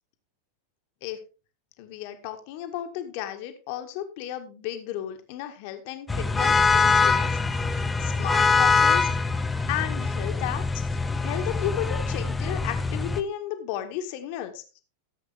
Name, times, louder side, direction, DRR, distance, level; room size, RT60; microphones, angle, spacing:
voice 1, 1.8-7.3 7.7-9.3 9.7-10.8 11.2-14.8, left 11 dB, 45° left, 7 dB, 1.8 m, -34 dB
sound 1, 6.1-13.2, left 4 dB, 10° left, 0.9 m, -23 dB
15.0 x 7.9 x 3.6 m, 0.33 s
figure-of-eight pair, 90°, 0 cm